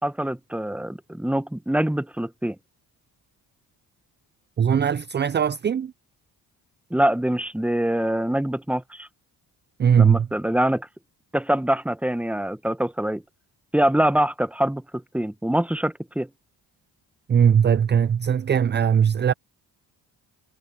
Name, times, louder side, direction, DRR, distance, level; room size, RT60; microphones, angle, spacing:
voice 1, 0.0-2.6 6.9-9.1 10.0-10.9 11.3-13.2 13.7-16.3, right 1 dB, 5° right, 1.2 m, -24 dB
voice 2, 4.6-5.9 9.8-10.3 17.3-19.3, right 8 dB, 25° right, 0.4 m, -19 dB
cardioid pair, 70°, 42 cm